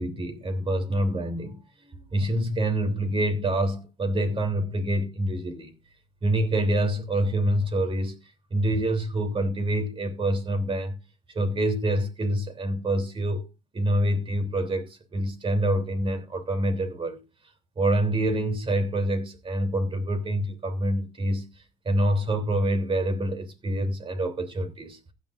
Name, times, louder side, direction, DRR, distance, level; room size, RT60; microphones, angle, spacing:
voice 1, 0.0-5.7 6.2-8.2 8.5-11.0 11.3-13.4 13.7-17.2 17.8-21.5 21.8-25.0, right 1 dB, 30° right, 3.2 m, -26 dB
15.5 x 10.5 x 2.6 m
cardioid pair, 110°, 17 cm